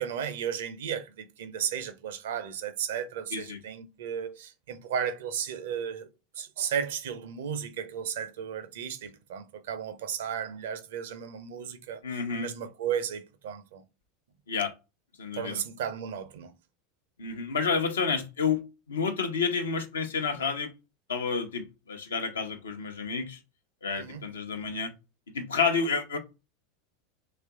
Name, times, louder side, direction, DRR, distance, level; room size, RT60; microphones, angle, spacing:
voice 1, 0.0-6.1 6.4-12.0 12.3-13.8 15.3-16.5 24.0-24.2, right 8 dB, 65° right, 0.6 m, -34 dB
voice 2, 12.0-12.5 14.5-14.7 15.2-15.6 17.2-20.7 21.1-23.4 23.8-24.9 25.3-26.2, left 5 dB, 80° left, 0.7 m, -30 dB
3.0 x 2.4 x 3.5 m
figure-of-eight pair, 85°, 0 cm